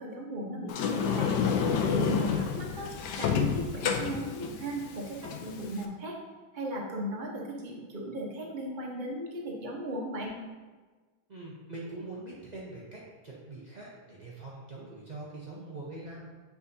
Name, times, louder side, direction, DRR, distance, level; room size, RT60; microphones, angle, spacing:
voice 1, 0.0-2.9 3.2-6.2 6.5-10.3, right 1 dB, 40° right, -2 dB, 0.7 m, -36 dB
Sliding door, 0.7-5.8, left 7 dB, 75° left, 1.0 m, -29 dB
voice 2, 2.0-2.6 11.3-16.2, right 2 dB, 85° right, -5 dB, 0.3 m, -43 dB
8.2 x 4.7 x 2.7 m, 1.3 s
omnidirectional pair, 2.2 m